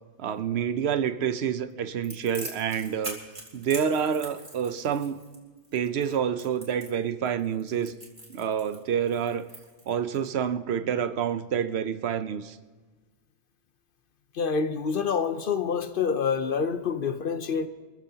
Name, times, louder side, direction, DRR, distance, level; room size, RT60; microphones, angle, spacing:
voice 1, 0.2-3.2 3.5-5.2 5.7-7.9 8.3-9.4 9.9-12.6, right 8 dB, 70° right, 1.0 m, -28 dB
Crackle, 2.0-10.3, right 1 dB, 25° right, 3.7 m, -43 dB
voice 2, 14.3-17.7, left 6 dB, 55° left, 0.8 m, -27 dB
27.0 x 14.5 x 2.8 m
omnidirectional pair, 1.1 m